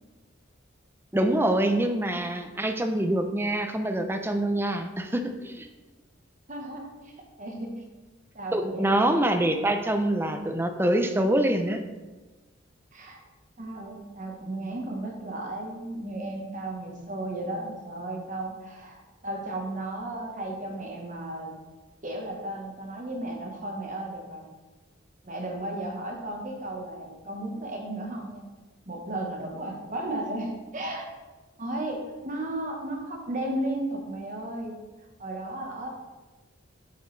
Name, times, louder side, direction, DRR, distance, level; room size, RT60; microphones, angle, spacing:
voice 1, 1.1-5.7 8.5-11.8, right 1 dB, 10° right, 6 dB, 0.5 m, -25 dB
voice 2, 6.5-7.1 7.4-7.8 8.3-8.9 12.9-13.2 13.6-21.6 22.0-24.4 25.2-28.5 28.8-31.1 31.6-34.8 35.2-35.9, right 1 dB, 40° right, 1 dB, 1.2 m, -34 dB
8.2 x 7.2 x 3.3 m, 1.2 s
head